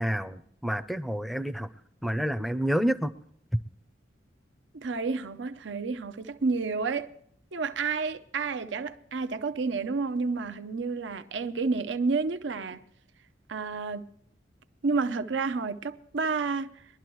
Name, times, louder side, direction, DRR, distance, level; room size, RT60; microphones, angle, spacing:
voice 1, 0.0-1.7 2.0-3.1, equal, ahead, 0.5 m, -29 dB
voice 2, 4.7-7.1 7.5-12.8 13.5-14.1 14.8-16.8, right 4 dB, 85° right, 0.6 m, -30 dB
21.5 x 12.0 x 3.1 m
head